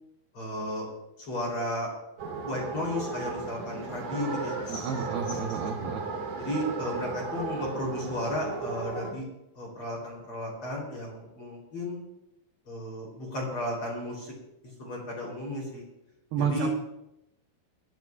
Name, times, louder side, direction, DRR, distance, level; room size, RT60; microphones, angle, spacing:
voice 1, 0.3-0.9 1.3-1.9 2.4-4.9 5.3-5.4 6.4-9.2 9.5-12.0 12.7-14.3 14.8-15.8 16.4-16.7, left 1 dB, 30° left, -2 dB, 3.5 m, -34 dB
sound 1, 2.2-9.1, right 4 dB, 50° right, 2.1 m, -35 dB
voice 2, 4.7-6.0 16.3-16.7, right 6 dB, 80° right, 2 dB, 2.2 m, -30 dB
21.5 x 13.0 x 2.4 m, 0.89 s
omnidirectional pair, 6.0 m